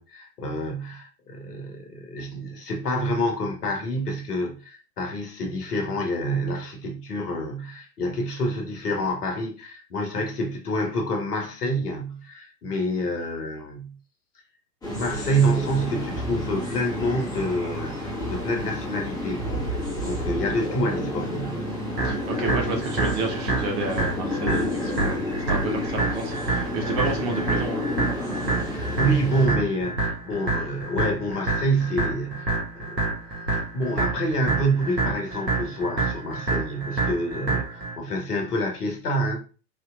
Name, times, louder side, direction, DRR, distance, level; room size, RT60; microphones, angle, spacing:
voice 1, 0.0-13.9 14.9-19.4 20.0-21.6 22.4-22.8 28.6-33.1 33.7-39.4, right 1 dB, 65° left, 1.2 m, -27 dB
sound 1, 14.8-29.5, left 1 dB, 5° left, 1.4 m, -30 dB
voice 2, 22.0-27.8, right 2 dB, 40° right, 1.1 m, -30 dB
sound 2, 22.0-38.0, right 3 dB, 80° right, 1.7 m, -28 dB
4.3 x 2.8 x 2.4 m
figure-of-eight pair, 100°, 50 cm